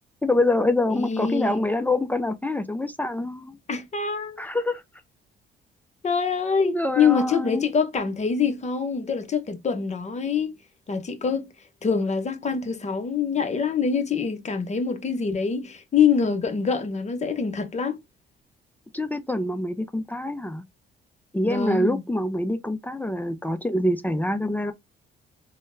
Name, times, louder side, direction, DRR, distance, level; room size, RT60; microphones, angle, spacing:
voice 1, 0.2-3.6 4.4-4.8 6.6-7.7 18.9-20.6 21.3-24.7, left 1 dB, 10° left, 0.4 m, -25 dB
voice 2, 0.9-1.7 3.7-4.4 6.0-10.5 10.9-11.5 11.8-18.0 21.4-22.0, left 6 dB, 35° left, 0.8 m, -25 dB
3.7 x 2.1 x 2.6 m
cardioid pair, 90°, 20 cm